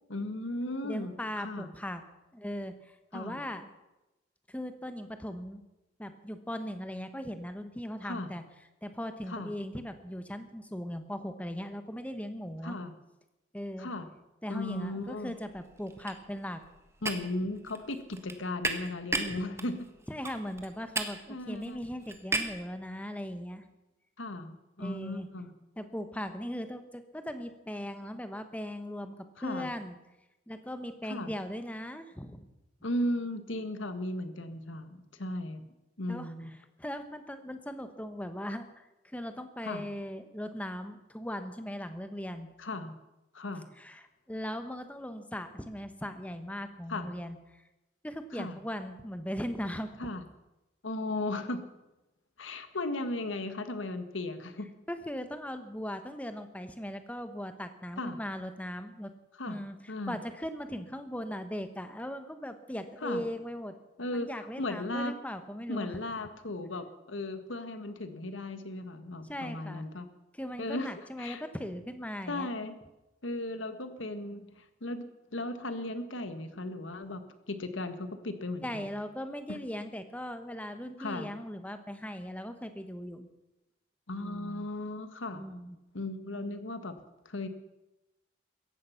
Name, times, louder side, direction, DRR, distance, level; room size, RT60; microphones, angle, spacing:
voice 1, 0.1-1.7 3.1-3.4 8.0-8.3 9.3-9.5 12.6-12.9 13.8-14.1 14.5-15.3 17.0-19.8 21.3-21.8 24.2-25.5 29.4-29.7 31.0-31.3 32.8-35.6 36.0-36.5 39.6-39.8 42.6-42.9 43.3-43.6 46.9-47.1 48.3-48.6 50.0-50.2 50.8-51.6 52.4-54.7 58.0-58.2 59.4-59.6 59.9-60.2 63.0-63.2 64.0-65.1 65.7-70.1 70.6-71.4 72.3-72.8 73.2-75.1 75.3-77.2 77.5-78.9 79.5-79.6 81.0-81.3 84.1-85.4 85.9-87.0 87.2-87.5, left 1 dB, 90° left, 10 dB, 1.5 m, -36 dB
voice 2, 0.8-2.0 2.3-3.7 4.5-5.6 6.0-8.4 8.8-12.8 13.5-13.9 14.4-16.6 19.3-19.4 20.1-23.6 24.8-25.3 25.8-30.0 30.5-32.5 36.1-36.3 36.8-42.5 43.8-47.6 48.0-49.9 54.9-59.1 59.5-63.8 64.1-66.0 69.2-69.9 70.4-72.5 78.6-83.3 84.2-84.7 85.3-85.8, equal, 5° left, 9 dB, 1.1 m, -39 dB
sound 1, 14.8-15.2 15.4-22.7, right 3 dB, 15° right, 1.3 m, -36 dB
17.0 x 14.5 x 5.8 m, 0.97 s
head